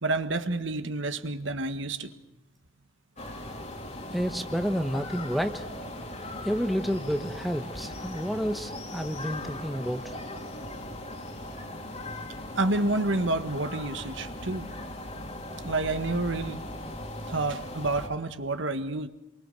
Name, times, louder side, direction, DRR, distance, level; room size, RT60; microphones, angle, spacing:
voice 1, 0.0-2.1 12.6-14.7 15.6-16.6 17.3-19.1, right 2 dB, 65° right, 9 dB, 1.6 m, -29 dB
sound 1, 3.2-18.1, left 1 dB, 35° left, 2.9 m, -39 dB
voice 2, 4.1-5.6 6.4-10.2, equal, ahead, 6 dB, 1.1 m, -30 dB
28.5 x 24.0 x 6.8 m, 0.90 s
head